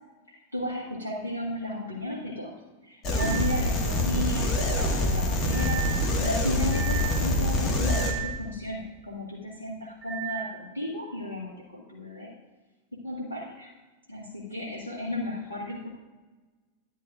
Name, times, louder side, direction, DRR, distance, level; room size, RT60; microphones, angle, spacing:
voice 1, 0.5-2.5 2.9-5.8 6.2-12.3 12.9-13.7 14.1-15.9, left 1 dB, 80° left, -5 dB, 1.5 m, -34 dB
sound 1, 3.0-8.1, left 1 dB, 30° left, 1.5 m, -25 dB
sound 2, 3.2-3.5 5.5-6.1 6.7-7.2 7.9-8.4 10.0-10.5, right 12 dB, 25° right, 1.3 m, -35 dB
11.0 x 11.0 x 2.4 m, 1.2 s
figure-of-eight pair, 90°, 0 cm